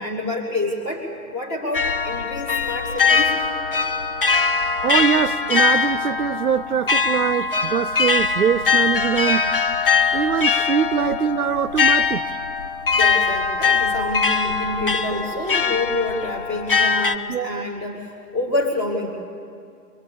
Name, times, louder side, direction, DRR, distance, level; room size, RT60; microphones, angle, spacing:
voice 1, 0.0-3.4 12.9-19.3, left 2 dB, 15° left, 1.3 m, -27 dB
sound 1, 1.7-17.2, left 5 dB, 35° left, 0.5 m, -21 dB
voice 2, 4.8-9.4 10.1-12.2 17.3-17.7, right 8 dB, 65° right, 0.7 m, -23 dB
23.0 x 18.0 x 8.5 m
hypercardioid pair, 160°, 47 cm